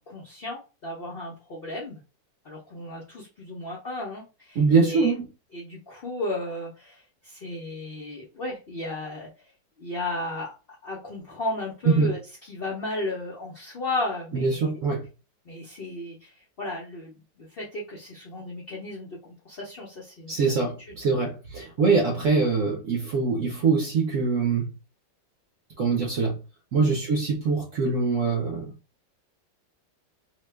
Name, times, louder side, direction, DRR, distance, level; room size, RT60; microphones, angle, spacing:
voice 1, 0.0-2.0 2.4-5.1 5.5-9.3 9.8-10.6 10.8-12.2 12.5-14.6 15.5-20.3 21.8-21.9 26.8-27.0, left 2 dB, 75° left, 0.5 m, -34 dB
voice 2, 4.5-5.3 11.9-12.1 14.3-15.0 20.3-24.7 25.8-26.4 26.7-28.7, right 4 dB, 60° right, 0.9 m, -23 dB
2.9 x 2.1 x 3.2 m
omnidirectional pair, 1.9 m